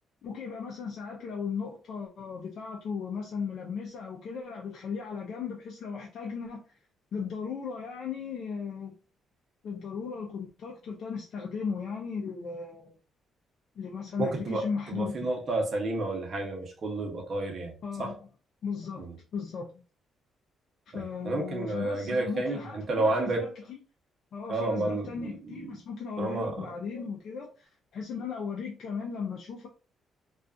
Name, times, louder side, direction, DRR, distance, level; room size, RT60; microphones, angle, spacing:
voice 1, 0.2-6.6 7.1-8.9 9.6-12.9 13.8-15.3 17.8-18.3 18.6-19.0 19.3-19.7 20.9-23.8 24.3-29.7, left 5 dB, 65° left, 0.5 m, -36 dB
voice 2, 14.2-17.7 18.0-18.1 19.0-19.1 20.9-23.5 24.5-25.1 26.2-26.7, right 2 dB, 50° right, 0.8 m, -30 dB
2.3 x 2.3 x 2.4 m
cardioid pair, 90°, 0 cm